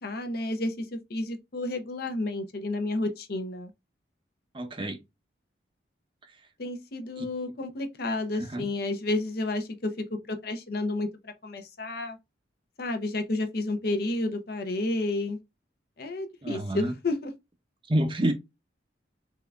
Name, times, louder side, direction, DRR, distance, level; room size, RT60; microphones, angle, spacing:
voice 1, 0.0-3.7 6.6-12.2 12.8-15.4 16.0-17.3, left 2 dB, 55° left, 0.7 m, -31 dB
voice 2, 4.5-5.0 7.2-7.5 8.4-8.6 16.4-16.9 17.9-18.3, right 1 dB, 25° right, 0.7 m, -29 dB
3.7 x 3.3 x 2.4 m
head